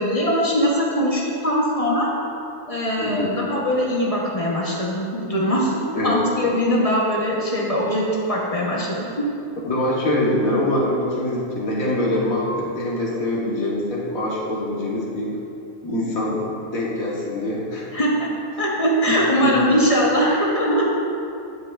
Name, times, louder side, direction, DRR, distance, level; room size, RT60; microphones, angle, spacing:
voice 1, 0.0-2.1 2.7-9.1 17.9-18.3 18.6-20.9, equal, 30° left, -3 dB, 0.8 m, -21 dB
voice 2, 3.0-3.3 5.9-6.2 9.7-15.3 15.8-17.9 19.1-19.2 19.4-19.6, left 1 dB, 65° left, -4 dB, 1.5 m, -24 dB
12.5 x 5.5 x 2.3 m, 2.6 s
omnidirectional pair, 1.6 m